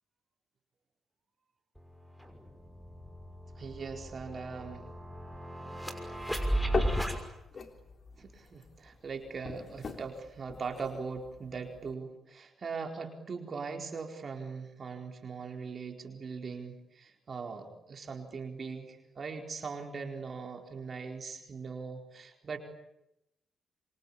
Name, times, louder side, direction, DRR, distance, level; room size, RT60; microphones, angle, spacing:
sound 1, 1.8-1.9 2.2-7.2, right 1 dB, 5° left, 6.2 m, -35 dB
voice 1, 3.6-4.9 8.1-22.6, right 5 dB, 50° right, 4 dB, 4.4 m, -40 dB
sound 2, 6.6-11.9, left 4 dB, 45° left, 3.3 m, -40 dB
26.5 x 25.5 x 8.7 m, 0.86 s
cardioid pair, 75°, 0 cm